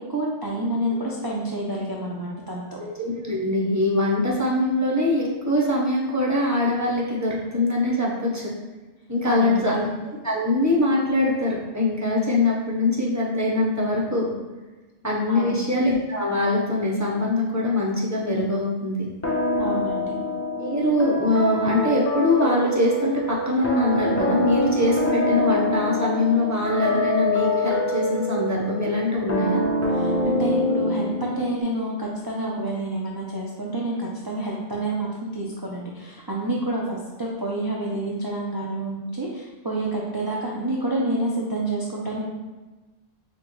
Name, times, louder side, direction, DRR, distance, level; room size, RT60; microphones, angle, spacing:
voice 1, 0.1-2.6 9.3-9.8 15.3-15.6 19.6-20.1 29.9-42.3, right 1 dB, 35° right, -4 dB, 0.3 m, -28 dB
voice 2, 2.8-8.5 9.1-9.9 10.2-14.3 15.0-19.1 20.6-29.6, left 2 dB, 15° right, -4 dB, 0.7 m, -23 dB
sound 1, 19.2-31.6, left 1 dB, 15° left, 0.5 m, -25 dB
6.2 x 2.2 x 3.0 m, 1.2 s
omnidirectional pair, 1.2 m